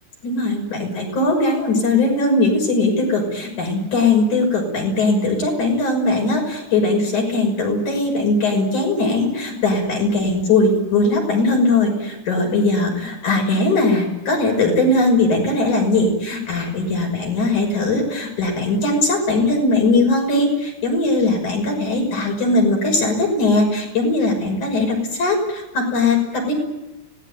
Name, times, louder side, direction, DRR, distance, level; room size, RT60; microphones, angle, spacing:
voice 1, 0.2-26.5, left 2 dB, 85° left, 2 dB, 7.7 m, -19 dB
24.5 x 19.5 x 9.3 m, 0.97 s
omnidirectional pair, 3.3 m